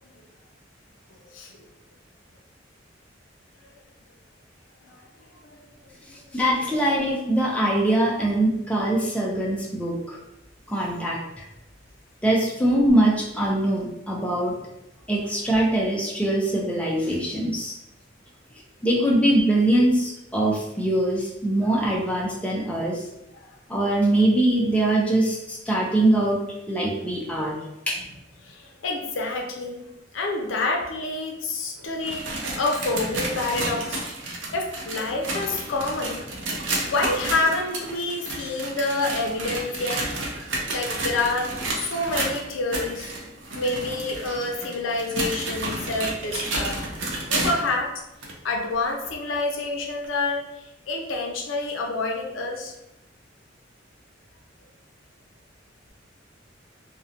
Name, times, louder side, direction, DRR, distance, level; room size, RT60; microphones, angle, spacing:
voice 1, 5.4-6.1 21.8-21.9 23.4-23.5 28.4-29.8 30.1-34.0 34.5-36.2 36.8-40.1 40.7-43.1 43.6-46.8 47.3-48.0 48.4-52.7, left 2 dB, 85° left, 1 dB, 0.5 m, -28 dB
voice 2, 6.3-10.2 10.7-11.2 12.2-14.6 15.1-17.8 18.8-23.0 23.7-26.4 26.7-27.6 27.9-28.0, right 1 dB, 5° left, -3 dB, 0.4 m, -22 dB
sound 1, 31.8-47.7 48.2-48.3 49.0-49.1 50.0-50.1, right 2 dB, 75° right, 0.5 m, -31 dB
2.7 x 2.1 x 2.4 m, 0.89 s
head